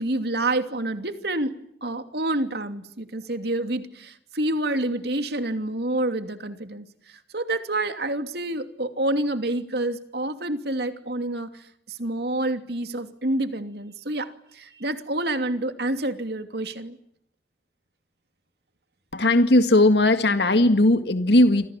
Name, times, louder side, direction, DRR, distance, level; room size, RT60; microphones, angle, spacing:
voice 1, 0.0-1.5 1.8-17.0, right 1 dB, 65° right, 8 dB, 2.8 m, -28 dB
voice 2, 19.1-21.7, left 1 dB, 70° left, 8 dB, 2.0 m, -18 dB
29.0 x 26.5 x 7.4 m, 0.72 s
head